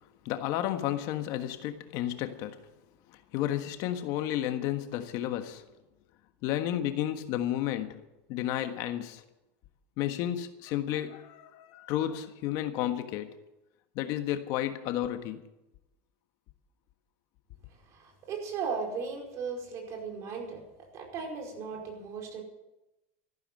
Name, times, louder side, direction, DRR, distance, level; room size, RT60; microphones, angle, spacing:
voice 1, 0.2-2.6 3.1-5.6 6.4-8.0 8.3-9.2 10.0-13.4 13.9-15.4, left 12 dB, 55° left, 8 dB, 1.5 m, -32 dB
voice 2, 17.9-20.6 20.9-22.4, right 5 dB, 45° right, 2 dB, 5.0 m, -36 dB
14.0 x 12.0 x 7.6 m, 0.95 s
supercardioid pair, 130°, 7 cm